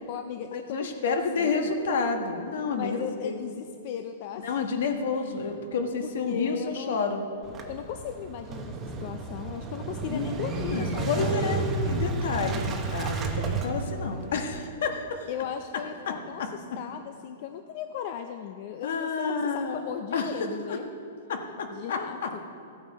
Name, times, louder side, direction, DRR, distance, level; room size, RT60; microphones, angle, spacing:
voice 1, 0.1-1.7 2.7-4.6 5.1-5.3 6.0-7.0 7.7-11.6 15.3-20.9 21.7-22.4, left 9 dB, 40° left, 7 dB, 0.4 m, -37 dB
voice 2, 0.7-3.0 3.2-3.4 4.4-7.2 10.1-15.2 16.1-16.8 18.8-19.9 20.1-20.8 21.3-22.3, left 4 dB, 65° left, 5 dB, 1.3 m, -30 dB
Motorcycle / Engine starting, 7.4-14.7, right 3 dB, 15° right, 0.8 m, -32 dB
14.5 x 8.7 x 4.1 m, 2.6 s
hypercardioid pair, 165°, 0 cm